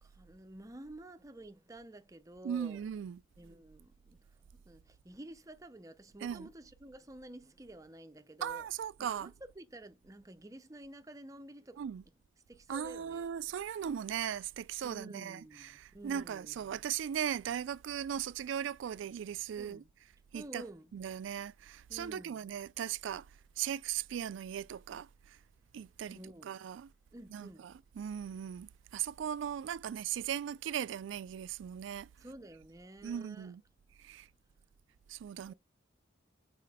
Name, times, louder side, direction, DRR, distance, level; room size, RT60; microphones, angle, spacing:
voice 1, 0.0-2.8 3.4-8.7 9.0-11.8 12.5-13.4 14.8-16.6 19.6-19.9 20.3-20.9 21.9-22.4 26.1-26.6 27.1-27.7 32.2-33.5 35.4-35.5, right 1 dB, 15° right, 0.5 m, -51 dB
voice 2, 2.4-3.2 6.2-6.5 8.4-9.3 11.8-12.0 12.7-19.8 20.3-20.6 20.9-23.3 23.6-25.4 25.7-26.9 27.3-32.1 33.0-33.6 34.0-34.3 35.1-35.5, right 9 dB, 75° right, 0.3 m, -38 dB
5.7 x 4.2 x 4.8 m
head